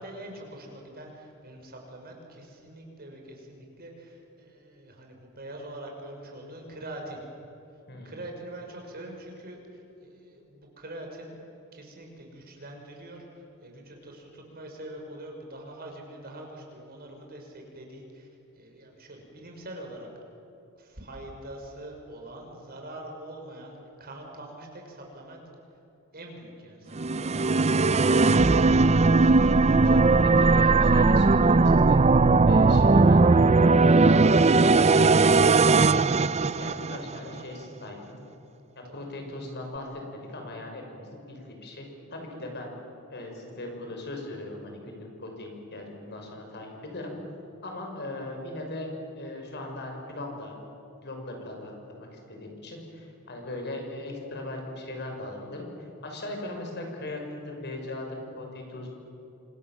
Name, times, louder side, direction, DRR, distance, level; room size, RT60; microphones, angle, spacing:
voice 1, 0.0-7.2 8.0-11.3 11.7-18.3 18.6-20.1 20.8-25.4 26.1-27.3 38.8-39.0, right 1 dB, 45° right, 2 dB, 5.9 m, -44 dB
voice 2, 7.9-8.2 28.9-32.0 32.4-36.1 36.4-38.2 38.8-42.7 43.1-47.2 47.6-48.9 49.2-50.5 51.0-55.7 56.0-58.9, left 2 dB, 50° left, 2 dB, 6.1 m, -39 dB
sound 1, 27.0-37.2, right 3 dB, 30° right, 0.5 m, -19 dB
28.0 x 27.0 x 7.5 m, 2.9 s
head